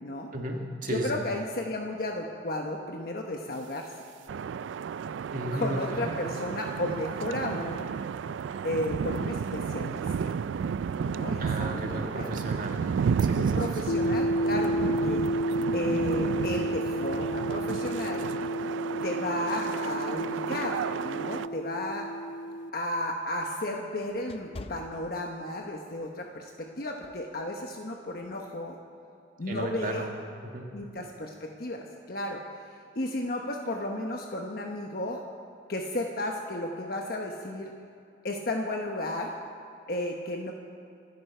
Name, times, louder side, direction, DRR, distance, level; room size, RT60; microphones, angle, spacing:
voice 1, 0.3-1.2 5.3-6.3 11.4-13.8 14.1-14.2 29.5-30.1 30.4-30.7, right 1 dB, 45° right, 1 dB, 1.8 m, -34 dB
voice 2, 0.9-3.9 5.5-7.9 8.6-10.3 11.0-12.3 13.4-15.2 15.7-18.3 19.0-22.1 22.7-28.8 29.4-30.1 30.7-32.4 32.9-35.2 35.7-37.7 38.2-39.3 39.9-40.5, left 1 dB, 55° left, 1 dB, 1.1 m, -33 dB
sound 1, 4.3-21.5, right 6 dB, 90° right, 0.3 m, -32 dB
sound 2, 13.9-22.7, equal, 90° left, 0.5 m, -31 dB
sound 3, 22.1-25.7 26.2-26.4 27.0-27.3, left 2 dB, 30° left, 0.5 m, -47 dB
26.5 x 11.0 x 4.5 m, 2.5 s
head